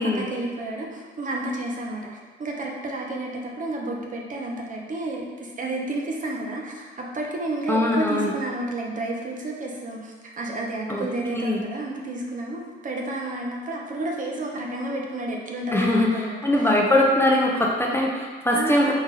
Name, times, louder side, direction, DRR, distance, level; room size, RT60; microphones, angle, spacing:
voice 1, 0.0-2.0 2.4-16.7 18.5-18.9, right 2 dB, 40° right, 0 dB, 0.7 m, -31 dB
voice 2, 7.7-8.3 10.9-11.6 15.7-18.9, left 1 dB, 10° left, -2 dB, 0.5 m, -22 dB
4.0 x 2.4 x 3.9 m, 1.4 s
cardioid pair, 90°, 20 cm